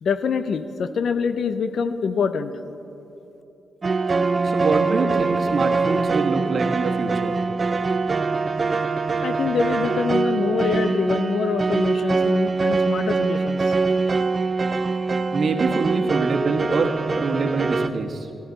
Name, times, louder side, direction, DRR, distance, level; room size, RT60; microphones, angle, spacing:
voice 1, 0.0-2.5 9.2-13.7, left 5 dB, 70° left, 12 dB, 0.6 m, -25 dB
sound 1, 3.8-17.9, right 4 dB, 40° right, 0.5 m, -23 dB
voice 2, 4.4-7.4 15.3-18.3, right 4 dB, 60° right, 3 dB, 1.3 m, -25 dB
17.5 x 11.5 x 4.0 m, 3.0 s
cardioid pair, 75°, 0 cm